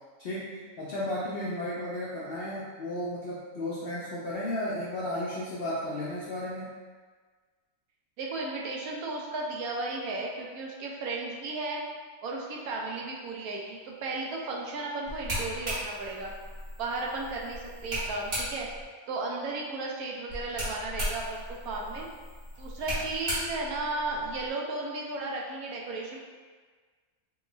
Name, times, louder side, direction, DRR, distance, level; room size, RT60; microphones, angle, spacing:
voice 1, 0.2-6.8, left 1 dB, 65° left, -8 dB, 0.5 m, -34 dB
voice 2, 8.2-11.8 12.2-16.4 16.8-18.7 19.1-22.0 22.6-26.2, right 2 dB, 85° right, -2 dB, 1.1 m, -34 dB
sound 1, 15.1-18.8 20.3-24.5, equal, 50° right, 1.4 m, -36 dB
3.4 x 2.2 x 3.1 m, 1.5 s
omnidirectional pair, 1.5 m